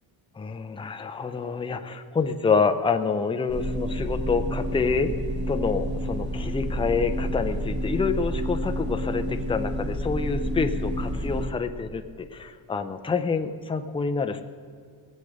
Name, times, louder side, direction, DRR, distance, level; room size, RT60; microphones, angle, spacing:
voice 1, 0.4-5.2 5.5-14.4, left 5 dB, 10° left, 7 dB, 0.5 m, -27 dB
sound 1, 3.5-11.5, equal, 25° right, 1.4 m, -29 dB
18.0 x 6.5 x 7.9 m, 2.1 s
wide cardioid pair, 180°, 46 cm